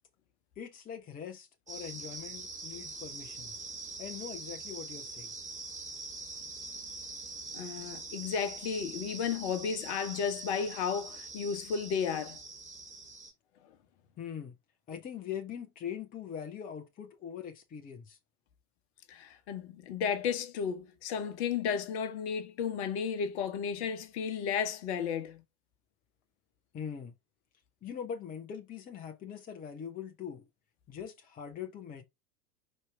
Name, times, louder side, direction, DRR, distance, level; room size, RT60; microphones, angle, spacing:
voice 1, 0.6-3.5 4.0-5.3 14.2-14.5 14.9-18.2 26.7-27.1 27.8-30.5 30.9-32.0, left 8 dB, 20° left, 0.9 m, -42 dB
sound 1, 1.7-13.3, right 3 dB, 15° right, 2.7 m, -44 dB
voice 2, 7.5-12.4 19.1-25.4, left 7 dB, 45° left, 1.3 m, -33 dB
5.5 x 4.4 x 4.6 m
figure-of-eight pair, 90°, 46 cm